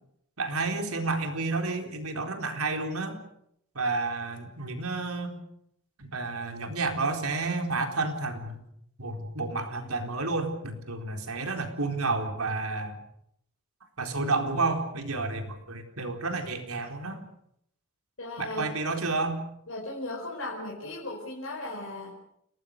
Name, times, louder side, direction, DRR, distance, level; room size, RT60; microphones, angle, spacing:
voice 1, 0.4-3.2 3.7-5.4 6.0-8.6 9.0-13.0 14.0-17.2 18.4-19.4, right 3 dB, 80° right, 4 dB, 4.2 m, -30 dB
voice 2, 18.2-18.7 19.7-22.1, left 2 dB, 65° left, -2 dB, 4.8 m, -36 dB
29.0 x 19.0 x 6.7 m, 0.75 s
head